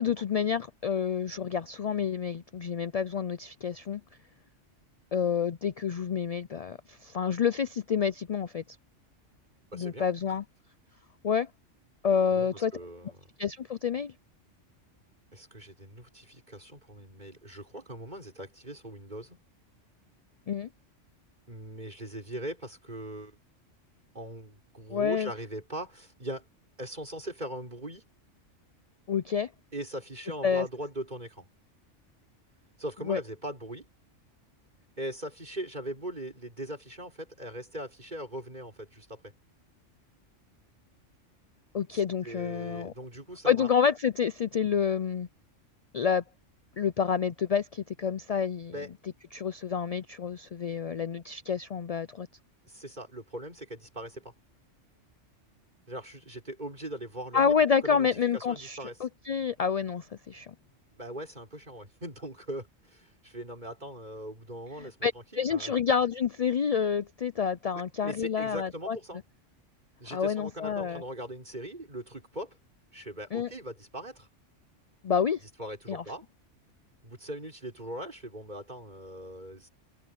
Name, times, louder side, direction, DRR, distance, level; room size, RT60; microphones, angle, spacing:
voice 1, 0.0-4.0 5.1-8.6 9.7-10.4 11.2-11.5 12.0-12.7 13.4-14.1 20.5-20.7 24.9-25.3 29.1-29.5 30.4-30.7 33.1-33.2 41.7-42.9 43.5-45.3 45.9-46.2 46.8-48.7 49.3-52.3 57.3-60.5 64.8-69.0 70.1-71.0 73.3-73.5 75.0-75.4 75.9-76.0, left 7 dB, 60° left, 0.4 m, -28 dB
voice 2, 9.7-10.1 12.3-13.2 15.3-19.4 21.5-23.4 24.1-26.5 26.8-28.0 29.7-31.5 32.8-33.9 35.0-39.3 41.9-43.7 48.7-48.9 52.7-54.3 55.9-58.1 58.3-59.0 60.9-65.1 65.5-65.7 67.7-69.2 70.0-72.6 72.9-74.3 75.6-76.3 77.0-79.7, right 1 dB, 35° right, 6.3 m, -40 dB
omnidirectional pair, 1.3 m